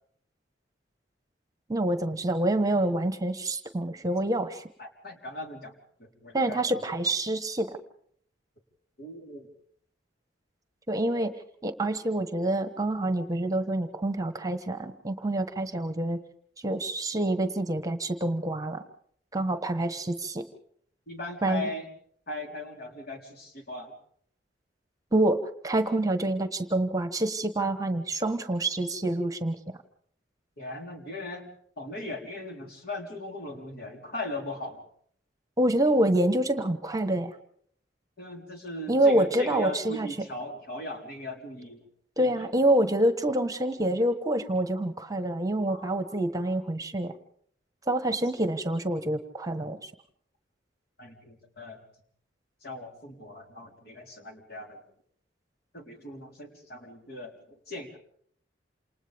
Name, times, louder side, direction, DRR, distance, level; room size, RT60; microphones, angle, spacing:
voice 1, 1.7-4.6 6.3-7.8 10.9-11.3 11.6-16.2 16.6-18.8 19.3-20.4 21.4-21.7 25.1-29.6 35.6-37.3 38.9-40.1 42.2-47.1 47.9-49.9, right 1 dB, 20° right, 9 dB, 1.3 m, -27 dB
voice 2, 4.8-5.7 6.0-6.8 9.0-9.5 21.1-21.9 22.3-23.9 30.6-31.5 31.8-34.8 38.2-41.8 42.2-42.3 45.7-46.0 46.4-46.5 51.0-51.8 52.6-54.8 55.7-58.0, left 1 dB, 60° left, 2 dB, 4.0 m, -39 dB
28.5 x 28.0 x 3.6 m, 0.62 s
head